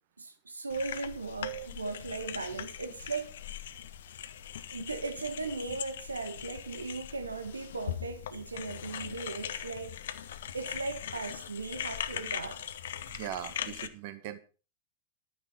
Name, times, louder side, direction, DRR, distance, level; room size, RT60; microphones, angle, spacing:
voice 1, 0.2-3.7 4.7-10.0 10.5-12.6, right 3 dB, 85° right, 1.8 m, -38 dB
sound 1, 0.7-13.9, left 10 dB, 65° left, 1.0 m, -40 dB
voice 2, 1.4-2.0 13.1-14.4, right 12 dB, 50° right, 1.9 m, -40 dB
12.0 x 9.5 x 5.5 m
figure-of-eight pair, 95°, 0 cm